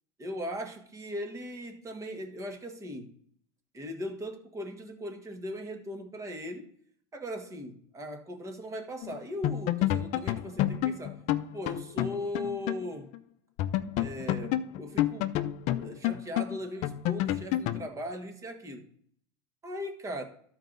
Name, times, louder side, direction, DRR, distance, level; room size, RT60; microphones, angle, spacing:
voice 1, 0.2-3.1 3.7-6.7 7.1-11.2 11.5-13.1 14.0-15.3 15.7-18.9 19.6-20.2, equal, 20° right, 1.5 m, -38 dB
sound 1, 9.0-9.2 9.4-12.9 13.1-13.2 13.6-17.9, left 13 dB, 50° left, 0.5 m, -29 dB
12.5 x 4.6 x 3.9 m
supercardioid pair, 120°, 15 cm